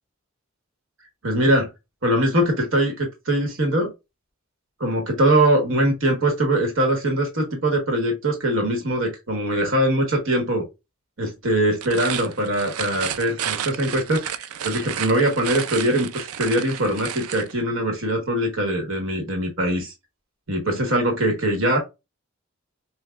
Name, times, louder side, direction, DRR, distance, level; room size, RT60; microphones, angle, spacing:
voice 1, 1.2-1.7 2.0-3.9 4.8-10.7 11.2-19.9 20.5-21.9, right 1 dB, 65° right, 1.2 m, -22 dB
sound 1, 11.7-17.5, right 9 dB, 90° right, 0.4 m, -32 dB
5.8 x 2.2 x 2.3 m
head